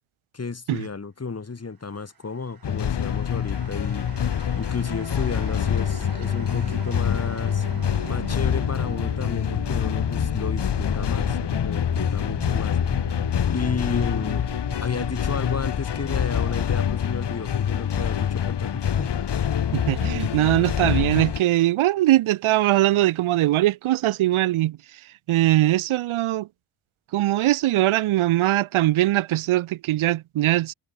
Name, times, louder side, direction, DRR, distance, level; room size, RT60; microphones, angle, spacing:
voice 1, 0.3-4.1 4.6-7.6 8.1-12.8 13.5-14.5 14.8-19.3, left 4 dB, 30° left, 4.8 m, -33 dB
sound 1, 2.2-17.4, right 6 dB, 45° right, 3.1 m, -41 dB
sound 2, 2.6-21.4, left 9 dB, 60° left, 1.9 m, -25 dB
voice 2, 19.7-24.8 25.3-26.5 27.1-30.7, right 15 dB, 90° right, 0.7 m, -21 dB
wide cardioid pair, 120°, 48 cm